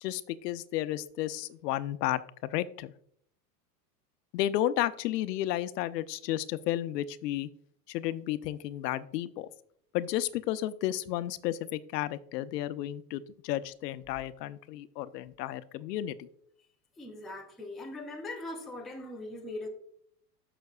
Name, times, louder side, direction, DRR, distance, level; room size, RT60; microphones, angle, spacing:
voice 1, 0.0-2.9 4.3-7.5 7.9-9.5 9.9-16.3, left 13 dB, 75° left, 0.7 m, -32 dB
voice 2, 17.0-19.7, left 2 dB, ahead, 0.4 m, -40 dB
13.0 x 5.9 x 2.3 m
supercardioid pair, 150°, 48 cm